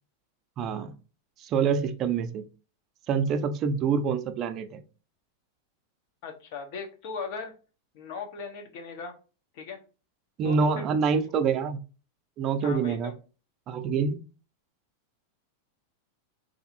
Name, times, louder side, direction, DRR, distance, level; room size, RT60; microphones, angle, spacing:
voice 1, 0.6-0.9 1.4-2.5 3.1-4.8 10.4-11.8 12.4-13.1 13.7-14.2, right 5 dB, 40° right, 0.4 m, -26 dB
voice 2, 6.2-7.5 7.9-9.1 9.5-9.8 10.4-10.9 11.2-11.3 12.6-13.1, left 4 dB, 60° left, 0.7 m, -38 dB
2.7 x 2.4 x 2.6 m
hypercardioid pair, 115°, 0 cm